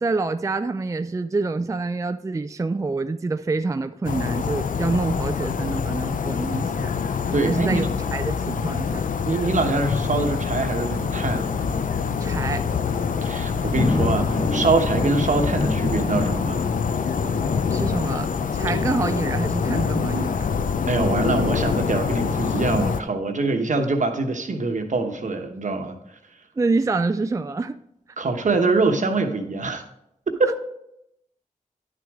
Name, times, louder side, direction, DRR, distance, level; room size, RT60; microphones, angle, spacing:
voice 1, 0.0-6.9 7.2-7.8 8.1-9.0 12.2-12.6 17.7-20.5 26.6-27.8, right 3 dB, 25° right, 10 dB, 0.3 m, -26 dB
sound 1, 4.0-23.0, left 6 dB, 80° left, 0.4 m, -25 dB
voice 2, 7.3-7.9 9.3-11.5 13.2-16.7 20.9-26.0 28.2-29.8 30.4-30.6, right 3 dB, 65° right, 5 dB, 1.0 m, -24 dB
sound 2, 10.4-19.1, left 2 dB, 40° left, 1.1 m, -30 dB
10.5 x 6.2 x 3.6 m, 0.79 s
wide cardioid pair, 60°, 14 cm